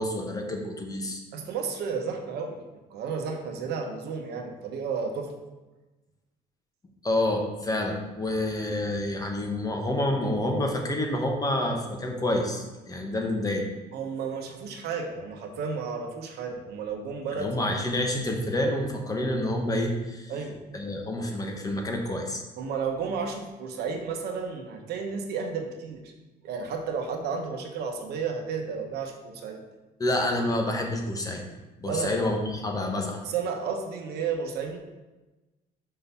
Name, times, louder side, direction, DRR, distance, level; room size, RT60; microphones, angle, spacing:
voice 1, 0.0-1.2 7.0-13.7 17.4-20.3 20.7-22.4 30.0-31.4 31.8-33.2, left 1 dB, 20° left, 2 dB, 1.1 m, -28 dB
voice 2, 1.3-2.6 2.9-5.3 13.9-17.6 20.3-20.6 22.6-26.0 26.4-29.6 31.9-32.2 33.2-34.8, right 5 dB, 75° right, 4 dB, 1.0 m, -32 dB
5.5 x 3.9 x 5.5 m, 1.1 s
cardioid pair, 110°, 17 cm